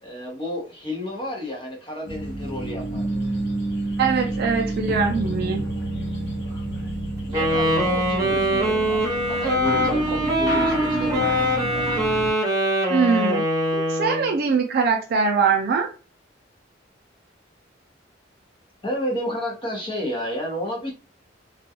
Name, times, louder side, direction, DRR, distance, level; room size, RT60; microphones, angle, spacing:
voice 1, 0.0-3.0 7.3-11.8 18.8-20.9, left 1 dB, 25° left, -1 dB, 0.8 m, -31 dB
sound 1, 2.1-12.3, right 1 dB, 60° left, 0.7 m, -29 dB
voice 2, 4.0-5.6 12.9-13.4 13.9-15.9, right 5 dB, 55° right, 3 dB, 0.4 m, -22 dB
Wind instrument woodwind instrument, 7.3-14.3, equal, 20° right, 0.9 m, -23 dB
2.3 x 2.2 x 2.8 m, 0.37 s
head